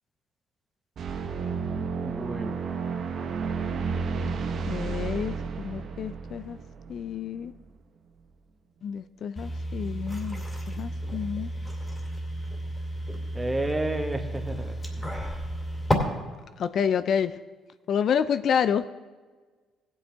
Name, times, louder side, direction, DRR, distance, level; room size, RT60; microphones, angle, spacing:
sound 1, 1.0-7.6, right 5 dB, 60° right, 0.9 m, -32 dB
voice 1, 2.0-2.6 13.3-15.1, right 1 dB, 15° right, 4 dB, 1.4 m, -31 dB
voice 2, 4.6-6.6 6.9-7.5 8.8-11.5 16.6-17.4 17.9-18.9, left 7 dB, 60° left, 12 dB, 0.4 m, -29 dB
sound 2, 9.4-15.9, equal, 15° left, 2.4 m, -32 dB
15.5 x 8.7 x 3.5 m, 1.4 s
supercardioid pair, 75°, 0 cm